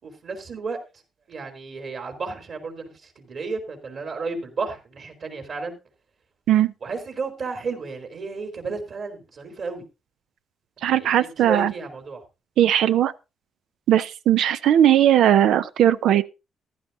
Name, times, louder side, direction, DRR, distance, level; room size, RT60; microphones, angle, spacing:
voice 1, 0.0-0.8 1.3-5.8 6.8-9.8 10.8-12.2, right 4 dB, 50° right, 3.7 m, -32 dB
voice 2, 10.8-11.7 12.6-13.1 13.9-16.2, right 11 dB, 80° right, 0.6 m, -18 dB
14.5 x 11.5 x 2.7 m
cardioid pair, 90°, 0 cm